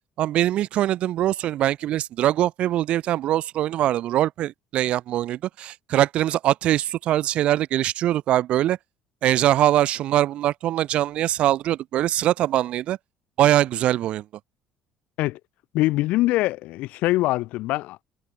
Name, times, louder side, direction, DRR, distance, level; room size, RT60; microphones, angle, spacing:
voice 1, 0.2-8.8 9.2-13.0 13.4-14.3, right 13 dB, 50° right, 1.8 m, -22 dB
voice 2, 15.7-18.0, left 18 dB, 75° left, 1.5 m, -23 dB
cardioid pair, 165°, 2 cm